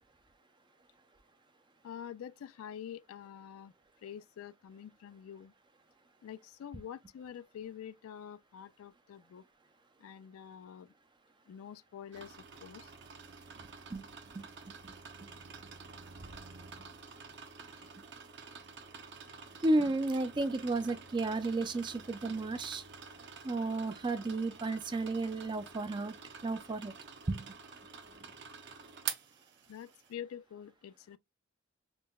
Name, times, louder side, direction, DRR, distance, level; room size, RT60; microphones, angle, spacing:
voice 1, 1.8-3.7 4.0-5.5 6.2-9.4 10.0-10.9 11.5-12.9 29.7-31.2, left 9 dB, 80° left, 0.3 m, -47 dB
sound 1, 12.1-30.1, right 6 dB, 55° right, 0.7 m, -48 dB
voice 2, 19.6-22.8 23.4-26.1 26.4-26.9 27.3-27.5, right 2 dB, 20° right, 0.4 m, -33 dB
5.2 x 2.1 x 2.2 m
head